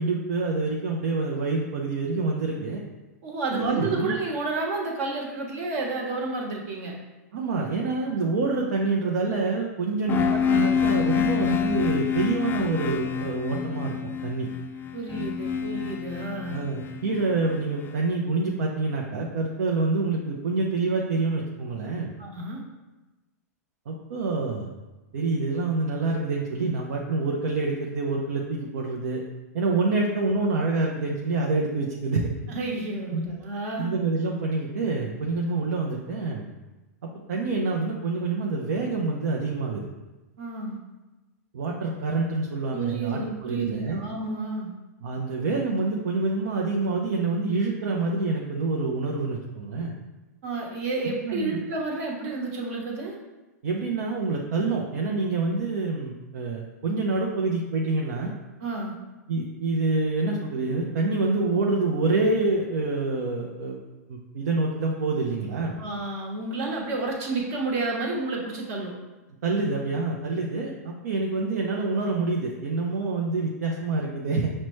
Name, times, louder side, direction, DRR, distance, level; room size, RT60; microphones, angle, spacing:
voice 1, 0.0-2.8 3.5-4.2 7.3-13.9 14.2-14.5 16.5-22.1 23.9-24.7 25.1-29.2 29.5-32.3 33.1-33.3 33.8-36.5 37.0-39.9 41.5-44.0 45.0-49.9 51.0-51.6 53.6-58.3 59.3-63.8 64.1-65.8 69.4-74.5, right 3 dB, 70° right, -1 dB, 0.5 m, -27 dB
voice 2, 3.2-6.9 14.9-16.6 22.2-22.6 32.5-33.9 40.4-40.8 42.7-44.7 50.4-53.1 58.6-59.0 65.8-68.9, right 3 dB, 55° right, -1 dB, 1.1 m, -30 dB
sound 1, 10.1-17.9, left 7 dB, 20° left, 0.4 m, -27 dB
5.8 x 2.1 x 3.1 m, 1.1 s
hypercardioid pair, 110°, 9 cm